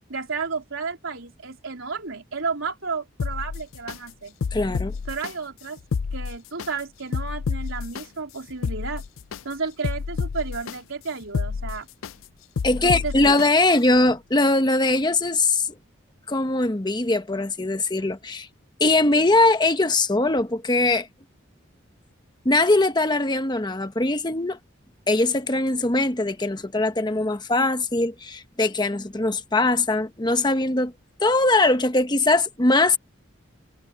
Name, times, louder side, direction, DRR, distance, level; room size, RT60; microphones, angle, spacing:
voice 1, 0.1-4.3 5.1-5.8 6.1-9.0 9.4-11.9 12.8-13.4, right 4 dB, 85° right, 3.7 m, -32 dB
sound 1, 3.2-4.0 4.4-5.3 5.8-6.7 7.1-8.0 8.5-9.4 9.8-10.7 11.2-12.1 12.6-13.5 13.9-14.0, left 5 dB, 90° left, 0.4 m, -29 dB
voice 2, 4.5-4.9 12.6-15.7 16.3-18.5 18.8-21.1 22.4-24.6 25.1-30.9 31.2-33.0, left 2 dB, 20° left, 1.0 m, -21 dB
head